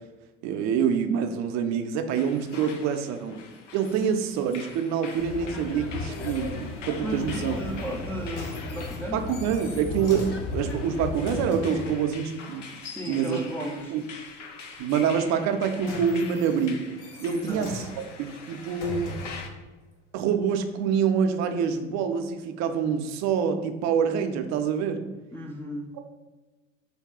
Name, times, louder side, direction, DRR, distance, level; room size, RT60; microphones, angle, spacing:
voice 1, 0.4-3.4 3.7-7.5 9.1-12.7 13.1-13.5 13.9-14.0 14.8-16.8 17.2-19.1 20.1-25.0 25.9-26.0, right 7 dB, 50° right, 7 dB, 0.5 m, -26 dB
sound 1, 2.2-19.5, left 5 dB, 85° left, 0.5 m, -45 dB
sound 2, 5.2-11.5, left 3 dB, 35° left, 0.7 m, -36 dB
voice 2, 7.0-9.2 12.8-14.0 17.3-17.7 25.3-25.9, right 1 dB, 5° left, -2 dB, 0.3 m, -34 dB
sound 3, 7.9-12.0 15.4-19.6 20.3-20.4, left 2 dB, 70° left, 0.9 m, -40 dB
4.0 x 2.3 x 3.6 m, 1.2 s
hypercardioid pair, 70°, 36 cm